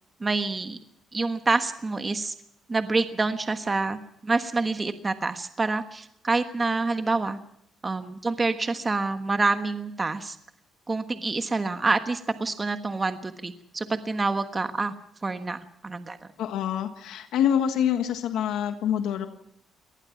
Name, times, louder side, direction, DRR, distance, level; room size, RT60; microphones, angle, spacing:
voice 1, 0.2-0.8 1.1-2.3 2.7-7.4 7.8-10.4 10.9-14.9 15.2-16.2, right 3 dB, 25° right, 8 dB, 1.3 m, -27 dB
voice 2, 16.4-19.3, left 9 dB, 85° left, 7 dB, 1.5 m, -26 dB
24.0 x 19.0 x 5.9 m, 0.76 s
cardioid pair, 90°, 0 cm